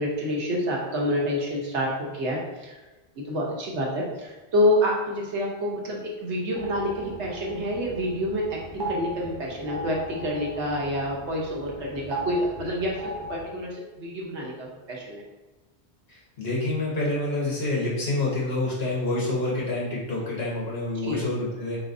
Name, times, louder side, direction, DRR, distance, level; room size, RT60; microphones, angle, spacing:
voice 1, 0.0-2.8 3.2-15.2 20.9-21.2, equal, 85° right, -2 dB, 1.3 m, -28 dB
sound 1, 6.5-13.5, right 1 dB, 25° right, 0.7 m, -38 dB
voice 2, 16.1-21.8, left 2 dB, 60° left, -5 dB, 1.5 m, -27 dB
4.2 x 3.9 x 2.6 m, 1.1 s
omnidirectional pair, 1.1 m